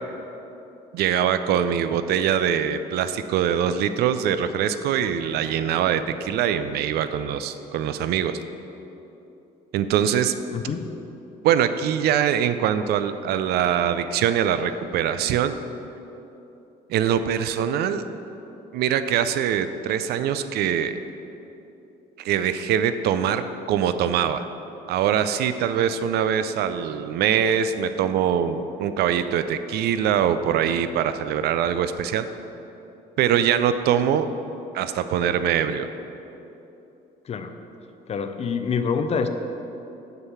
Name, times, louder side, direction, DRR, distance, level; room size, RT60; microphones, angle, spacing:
voice 1, 0.9-8.4 9.7-10.3 11.4-15.5 16.9-18.0 18.7-21.0 22.2-24.5 24.9-32.3 33.2-34.3 34.7-35.9, right 9 dB, 70° right, 11 dB, 0.4 m, -23 dB
voice 2, 10.5-10.9 37.3-37.5 38.1-39.3, left 6 dB, 40° left, 8 dB, 0.5 m, -26 dB
6.7 x 4.6 x 6.7 m, 3.0 s
cardioid pair, 110°, 17 cm